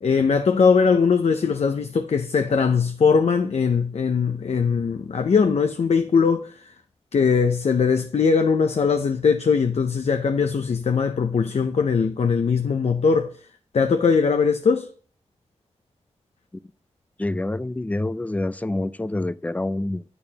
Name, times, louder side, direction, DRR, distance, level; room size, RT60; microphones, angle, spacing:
voice 1, 0.0-6.7 7.1-13.3 13.7-14.9, left 5 dB, 65° left, 0.5 m, -20 dB
voice 2, 17.2-20.0, left 2 dB, 15° left, 0.3 m, -27 dB
8.6 x 6.8 x 2.8 m
wide cardioid pair, 75°, 12 cm